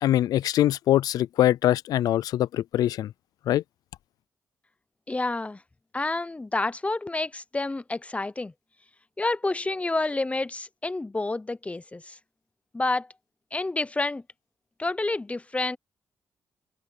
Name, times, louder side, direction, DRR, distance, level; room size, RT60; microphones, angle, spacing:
voice 1, 0.0-3.1 3.5-3.6, left 13 dB, 80° left, 0.4 m, -23 dB
voice 2, 5.1-5.6 5.9-8.5 9.2-12.2 12.7-13.1 13.5-14.2 14.8-15.8, left 2 dB, 20° left, 0.8 m, -29 dB
supercardioid pair, 60°, 6 cm